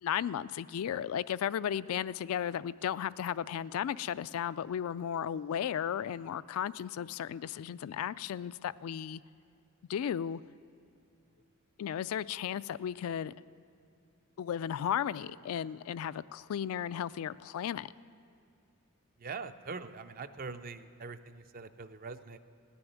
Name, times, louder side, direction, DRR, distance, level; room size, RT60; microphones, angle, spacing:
voice 1, 0.0-9.2 9.9-10.4 11.8-13.3 14.4-17.9, left 9 dB, 75° left, 16 dB, 0.3 m, -35 dB
voice 2, 19.2-22.4, right 4 dB, 40° right, 10 dB, 0.5 m, -43 dB
18.0 x 7.0 x 9.4 m, 2.4 s
head